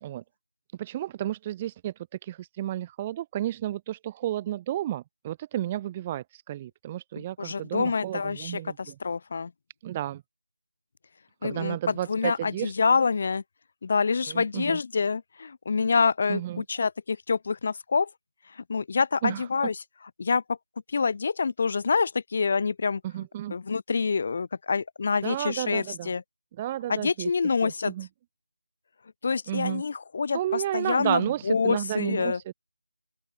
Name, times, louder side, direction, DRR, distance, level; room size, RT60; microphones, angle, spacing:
voice 1, 0.8-9.0 9.8-10.2 11.4-12.7 14.2-14.8 16.3-16.6 19.2-19.5 23.0-23.5 25.2-26.1 26.5-27.3 27.6-28.1 29.5-29.8 30.3-32.5, right 13 dB, 10° right, 1.9 m, -32 dB
voice 2, 7.4-9.5 11.4-13.4 13.8-18.1 18.5-19.7 20.2-20.6 20.9-23.0 23.5-26.2 26.9-27.9 29.2-32.4, left 5 dB, 30° left, 5.5 m, -27 dB
figure-of-eight pair, 175°, 0 cm